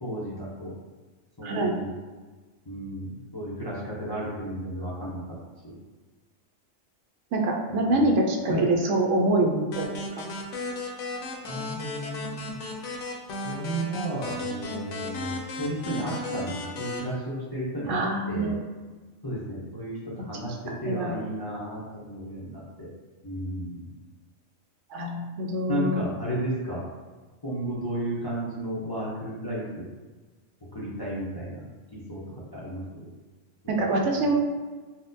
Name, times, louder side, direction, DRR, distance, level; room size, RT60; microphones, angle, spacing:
voice 1, 0.0-0.7 1.4-1.9 2.7-5.2 5.6-5.7 8.5-8.6 11.5-12.6 13.4-18.6 19.2-22.9 23.2-23.9 25.7-26.8 27.4-29.8 30.7-31.6 31.9-32.2 32.5-33.1 33.6-33.8, right 1 dB, 30° left, -8 dB, 0.4 m, -33 dB
voice 2, 1.4-1.8 7.3-10.3 17.9-18.6 20.3-20.4 20.7-21.1 24.9-26.0 33.7-34.3, right 1 dB, 70° right, 1 dB, 0.9 m, -25 dB
sound 1, 9.7-17.0, left 2 dB, 70° left, 0.9 m, -35 dB
4.0 x 2.1 x 2.6 m, 1.3 s
omnidirectional pair, 1.3 m